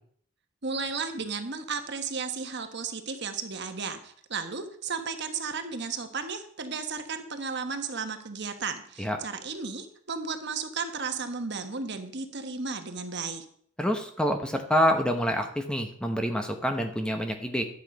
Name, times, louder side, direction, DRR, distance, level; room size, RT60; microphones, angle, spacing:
voice 1, 0.6-13.4, right 5 dB, 55° right, 7 dB, 1.3 m, -34 dB
voice 2, 13.8-17.6, equal, 5° left, 5 dB, 1.0 m, -27 dB
12.0 x 8.2 x 5.4 m, 0.63 s
head